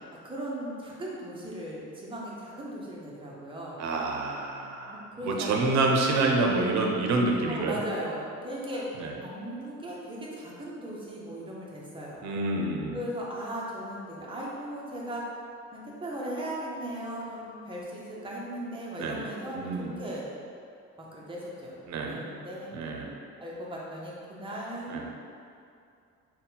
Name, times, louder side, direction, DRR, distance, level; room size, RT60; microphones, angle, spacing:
voice 1, 0.1-3.8 4.9-5.7 7.5-8.9 9.2-12.2 12.9-15.2 15.7-19.6 20.0-20.2 21.0-21.8 22.0-22.7 23.4-25.0, equal, 20° right, -5 dB, 0.6 m, -37 dB
voice 2, 3.8-7.8 9.0-9.1 12.2-13.0 19.0-19.2 19.5-19.9 21.9-22.2 22.7-23.1 24.9-25.0, right 3 dB, 65° right, 0 dB, 0.6 m, -27 dB
4.0 x 2.2 x 3.9 m, 2.5 s
cardioid pair, 155°, 29 cm